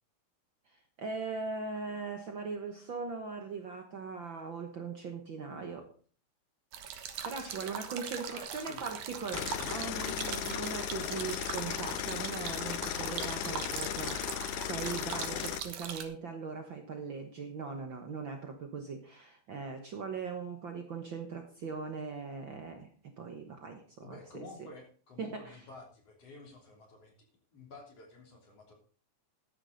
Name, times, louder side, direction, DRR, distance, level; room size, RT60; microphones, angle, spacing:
voice 1, 0.7-5.9 7.2-24.4 25.2-25.6, right 5 dB, 55° right, 4 dB, 1.6 m, -40 dB
sound 1, 6.7-16.0, right 8 dB, 85° right, 2.8 m, -41 dB
voice 2, 8.2-9.4 24.0-27.1 27.5-28.7, left 2 dB, 55° left, 1 dB, 4.1 m, -51 dB
sound 2, 9.3-15.6, left 13 dB, 90° left, 2.1 m, -36 dB
13.5 x 9.9 x 4.0 m, 0.42 s
omnidirectional pair, 3.4 m